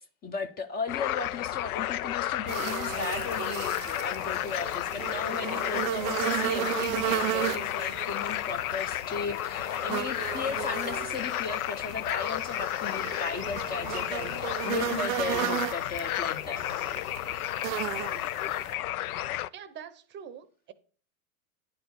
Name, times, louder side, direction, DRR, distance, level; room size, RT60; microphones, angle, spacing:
voice 1, 0.2-16.6, left 4 dB, 20° left, 0.6 m, -36 dB
sound 1, 0.9-19.5, left 14 dB, 80° left, 0.6 m, -32 dB
sound 2, 2.5-18.7, right 17 dB, 65° right, 0.5 m, -35 dB
voice 2, 19.5-20.7, right 8 dB, 25° right, 0.7 m, -44 dB
10.5 x 4.2 x 6.8 m
hypercardioid pair, 120°, 43 cm